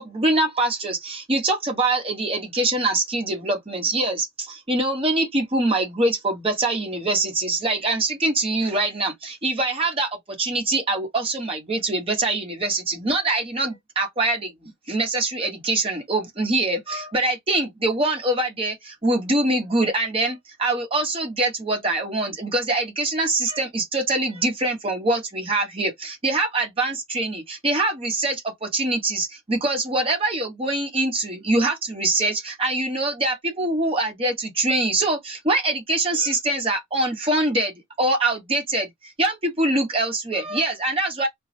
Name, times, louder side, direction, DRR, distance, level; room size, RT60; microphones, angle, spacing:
voice 1, 0.0-37.7 38.0-38.9 39.2-41.3, right 2 dB, 30° right, 1.0 m, -24 dB
3.0 x 2.2 x 2.5 m
head